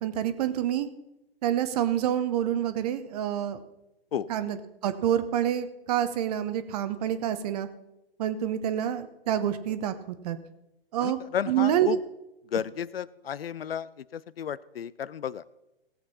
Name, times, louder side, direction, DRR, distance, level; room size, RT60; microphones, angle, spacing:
voice 1, 0.0-0.9 1.4-3.6 4.3-4.6 4.8-7.7 8.2-10.4 10.9-11.2 11.5-11.9, right 11 dB, 40° right, 12 dB, 0.9 m, -27 dB
voice 2, 11.0-12.0 12.5-15.4, left 9 dB, 75° left, 20 dB, 0.5 m, -33 dB
17.0 x 7.8 x 4.2 m, 0.92 s
figure-of-eight pair, 120°, 30 cm